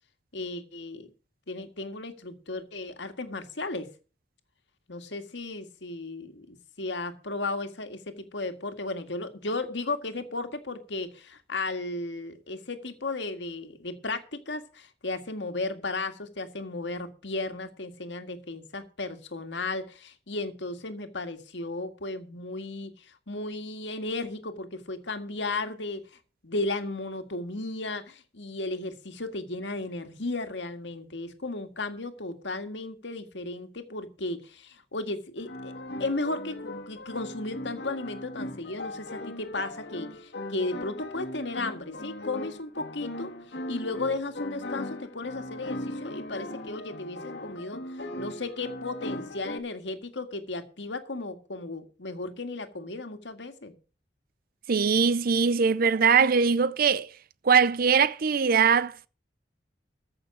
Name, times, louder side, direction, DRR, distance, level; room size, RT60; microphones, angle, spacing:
voice 1, 0.3-1.1 1.5-3.9 4.9-35.7 36.0-43.3 43.7-53.7, left 2 dB, 85° left, 1.9 m, -35 dB
sound 1, 35.4-49.6, left 1 dB, 70° left, 1.8 m, -38 dB
voice 2, 54.7-57.1 57.4-59.1, right 6 dB, 55° right, 0.6 m, -22 dB
14.5 x 6.4 x 6.2 m
head